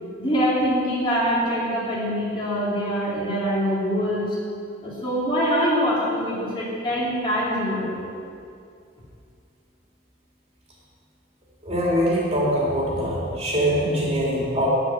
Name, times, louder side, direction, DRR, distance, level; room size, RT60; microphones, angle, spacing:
voice 1, 0.2-4.4 4.8-8.0, equal, 25° left, -7 dB, 2.9 m, -24 dB
voice 2, 11.6-14.7, equal, 35° right, -5 dB, 2.6 m, -23 dB
13.0 x 5.2 x 9.1 m, 2.4 s
head